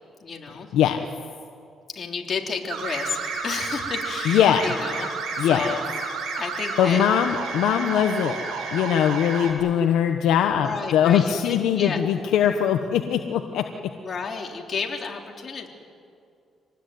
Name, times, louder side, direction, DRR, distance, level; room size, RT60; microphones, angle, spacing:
voice 1, 0.2-0.7 1.9-5.1 5.4-5.8 6.3-7.0 10.6-12.0 14.0-15.7, left 5 dB, 45° left, 1 dB, 3.7 m, -31 dB
sound 1, 2.7-9.5, right 4 dB, 85° right, 6.1 m, -31 dB
voice 2, 4.3-4.7 5.4-5.6 6.8-8.4 8.7-13.6, left 9 dB, 85° left, 5 dB, 1.1 m, -21 dB
26.0 x 19.5 x 9.5 m, 2.4 s
cardioid pair, 90°, 0 cm